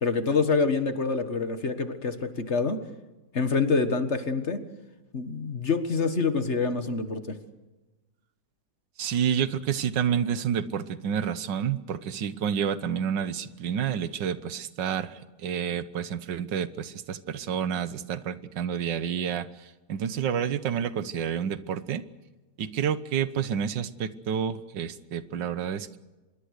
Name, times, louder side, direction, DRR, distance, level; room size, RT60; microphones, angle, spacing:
voice 1, 0.0-2.8 3.3-4.6 5.1-7.4, left 4 dB, 40° left, 9 dB, 1.7 m, -26 dB
voice 2, 9.0-22.0 22.6-26.0, right 8 dB, 85° right, 14 dB, 1.7 m, -29 dB
25.5 x 21.5 x 6.6 m, 1.1 s
omnidirectional pair, 1.9 m